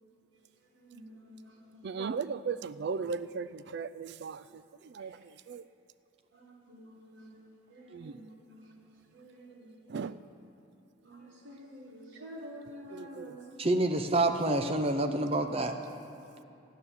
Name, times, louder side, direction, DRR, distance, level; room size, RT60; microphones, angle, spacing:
voice 1, 0.7-2.2 3.0-3.1 4.4-4.5 5.0-5.2 6.3-9.8 11.0-13.5, equal, 70° right, 1.6 m, -50 dB
voice 2, 1.8-4.4 4.9-5.2 5.5-5.6 7.9-8.1 9.9-10.1 12.9-13.3, right 5 dB, 55° right, 0.3 m, -36 dB
voice 3, 13.6-15.7, right 2 dB, 30° right, 0.7 m, -27 dB
13.5 x 9.3 x 7.0 m
head